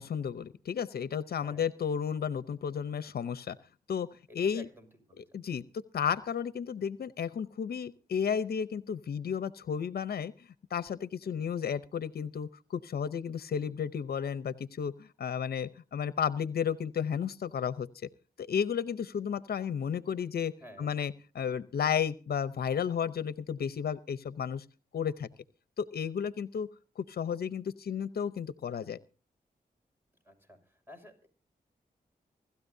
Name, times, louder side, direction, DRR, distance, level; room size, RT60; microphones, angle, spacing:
voice 1, 0.0-3.6 3.9-4.1 4.3-4.7 5.2-10.3 10.7-18.1 18.4-20.5 20.8-24.6 24.9-25.3 25.8-26.7 27.0-29.0, left 7 dB, 75° left, 15 dB, 0.7 m, -33 dB
voice 2, 4.3-5.4 11.2-11.5 20.6-21.0 30.2-31.3, right 1 dB, 15° right, 5 dB, 6.1 m, -52 dB
25.0 x 13.0 x 2.7 m, 0.35 s
cardioid pair, 60°, 16 cm